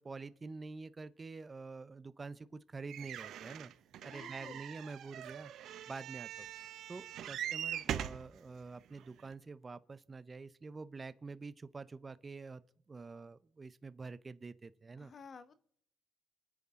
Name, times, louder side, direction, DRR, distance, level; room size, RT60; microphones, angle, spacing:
voice 1, 0.0-3.7 4.0-5.5 5.9-6.5 6.9-12.6 12.9-15.1, right 4 dB, 30° right, 0.7 m, -47 dB
sound 1, 2.9-8.3 9.0-9.1 9.3-9.4, right 10 dB, 75° right, 0.8 m, -42 dB
voice 2, 4.0-4.6 15.0-15.6, left 5 dB, 50° left, 1.2 m, -52 dB
28.5 x 9.6 x 3.7 m
cardioid pair, 80°, 0 cm